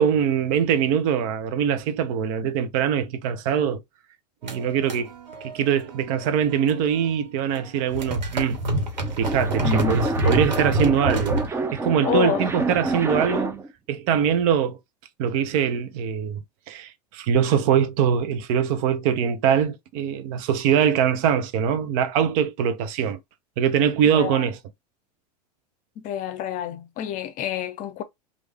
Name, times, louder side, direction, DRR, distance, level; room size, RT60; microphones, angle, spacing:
voice 1, 0.0-3.8 4.4-5.1 5.4-8.6 9.2-14.8 15.2-16.4 16.7-23.2 23.6-24.6, right 8 dB, 55° right, 0.7 m, -23 dB
sound 1, 4.4-7.1 7.4-11.5, right 1 dB, 90° right, 1.3 m, -27 dB
sound 2, 8.8-13.7, right 3 dB, 10° right, 0.5 m, -28 dB
voice 2, 9.6-10.0 12.0-12.4 24.1-24.5 26.0-28.0, left 9 dB, 40° left, 0.6 m, -28 dB
3.2 x 2.4 x 3.3 m
hypercardioid pair, 100°, 21 cm